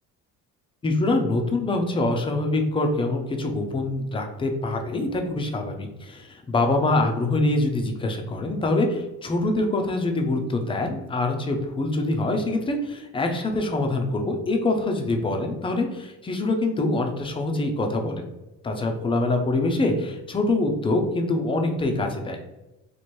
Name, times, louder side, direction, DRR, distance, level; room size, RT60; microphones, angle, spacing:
voice 1, 0.8-18.3 18.6-22.4, left 2 dB, 15° left, 3 dB, 0.4 m, -25 dB
3.1 x 2.5 x 4.4 m, 0.97 s
cardioid pair, 135°, 33 cm